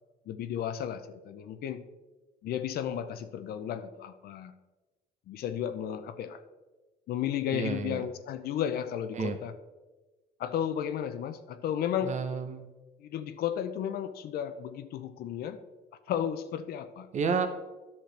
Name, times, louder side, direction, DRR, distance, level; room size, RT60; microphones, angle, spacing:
voice 1, 0.3-1.8 2.4-4.5 5.3-6.4 7.1-9.5 10.4-12.2 13.0-15.6 16.1-17.1, left 9 dB, 65° left, 10 dB, 0.7 m, -33 dB
voice 2, 7.5-8.0 9.1-9.4 12.0-12.7 17.1-17.5, right 5 dB, 45° right, 9 dB, 0.9 m, -30 dB
10.5 x 6.6 x 3.4 m, 1.2 s
cardioid pair, 110°, 17 cm